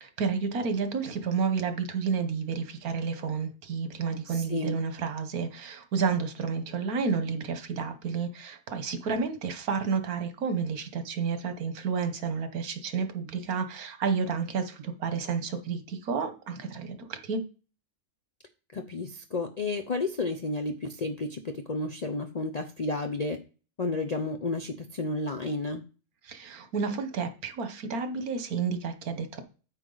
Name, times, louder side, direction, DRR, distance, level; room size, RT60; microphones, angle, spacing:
voice 1, 0.0-17.4 26.2-29.4, right 5 dB, 85° right, 8 dB, 1.6 m, -31 dB
voice 2, 4.3-4.8 18.7-23.4 23.8-25.8, left 3 dB, 55° left, 5 dB, 0.4 m, -32 dB
9.0 x 5.9 x 3.9 m, 0.36 s
omnidirectional pair, 1.5 m